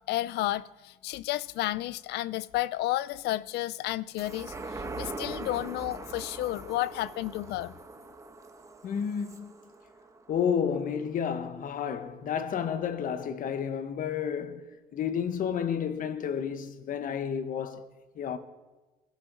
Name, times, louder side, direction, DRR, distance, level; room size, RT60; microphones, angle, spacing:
voice 1, 0.1-7.7, left 16 dB, 80° left, 0.5 m, -32 dB
sound 1, 4.2-11.0 11.4-11.5, right 3 dB, 20° right, 1.3 m, -42 dB
voice 2, 8.8-9.5 10.3-14.6 14.9-17.8 18.2-18.4, left 7 dB, 55° left, 1.1 m, -31 dB
21.0 x 13.0 x 4.0 m
cardioid pair, 110°, 17 cm